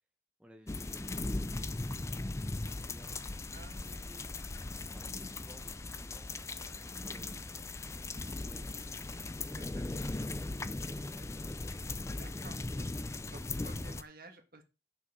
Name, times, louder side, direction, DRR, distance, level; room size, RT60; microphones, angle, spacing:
voice 1, 0.4-3.4 3.7-4.3 4.6-7.4 8.2-11.8, equal, 5° right, 3 dB, 0.9 m, -59 dB
sound 1, 0.7-14.0, left 2 dB, 15° left, 0.4 m, -39 dB
voice 2, 3.5-4.1 6.6-6.9 9.6-10.5 10.9-11.1 12.0-14.6, right 2 dB, 50° right, 5 dB, 1.8 m, -55 dB
7.3 x 6.5 x 6.6 m, 0.29 s
head